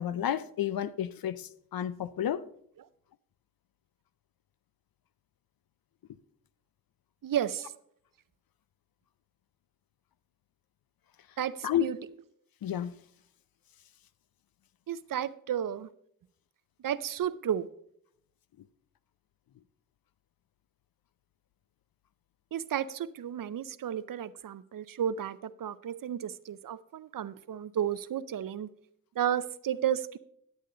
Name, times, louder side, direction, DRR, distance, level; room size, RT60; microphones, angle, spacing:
voice 1, 0.0-2.4 11.6-11.9 12.6-13.0, left 10 dB, 80° left, 0.5 m, -31 dB
voice 2, 7.2-7.7 11.4-12.0 14.9-15.9 16.8-17.7 22.5-28.7 29.2-30.2, right 10 dB, 70° right, 0.5 m, -32 dB
10.5 x 8.2 x 3.8 m
cardioid pair, 65°, 35 cm